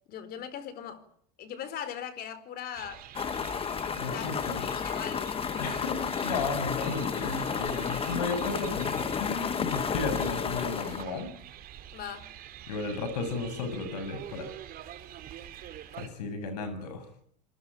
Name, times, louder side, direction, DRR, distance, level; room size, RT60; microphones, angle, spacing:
voice 1, 0.1-1.0 1.4-3.0 3.8-5.7 11.9-12.3, left 9 dB, 50° left, 4.4 m, -40 dB
sound 1, 2.7-16.1, right 11 dB, 45° right, 3.9 m, -46 dB
sound 2, 3.1-11.0, left 7 dB, 25° left, 1.5 m, -32 dB
voice 2, 4.0-4.7 5.6-11.3 12.7-14.5 16.0-17.0, left 3 dB, 80° left, 7.8 m, -34 dB
27.0 x 20.5 x 9.4 m
hypercardioid pair, 85°, 20 cm